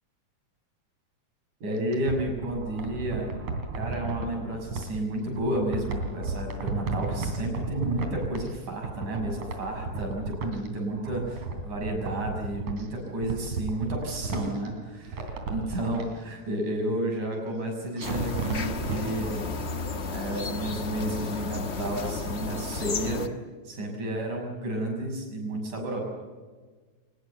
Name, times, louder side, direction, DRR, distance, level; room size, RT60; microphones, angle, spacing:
voice 1, 1.6-3.3 3.7-19.5 20.1-23.3 23.7-26.0, right 1 dB, 90° right, 1 dB, 7.8 m, -31 dB
sound 1, 1.7-4.9 5.3-8.6 8.8-10.7 11.0-12.8 13.2-14.7 15.0-16.0 18.0-19.0 19.3-19.4, right 3 dB, 70° right, 4.4 m, -33 dB
sound 2, 18.0-23.3, left 4 dB, 75° left, 0.6 m, -33 dB
23.0 x 21.0 x 8.1 m, 1.4 s
omnidirectional pair, 3.4 m